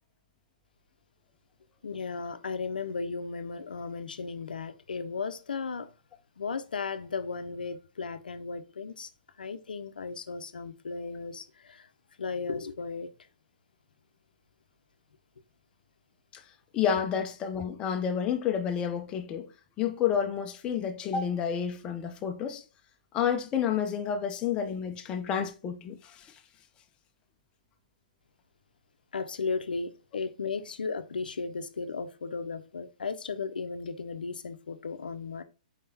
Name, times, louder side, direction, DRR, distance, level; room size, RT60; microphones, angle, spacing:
voice 1, 1.8-5.9 6.4-9.1 9.4-11.9 12.2-13.1 29.1-35.4, left 4 dB, 85° left, 0.6 m, -35 dB
voice 2, 16.7-19.5 19.8-22.6 23.1-26.3, left 8 dB, 20° left, 0.5 m, -30 dB
4.8 x 3.6 x 2.7 m
hypercardioid pair, 145°, 5 cm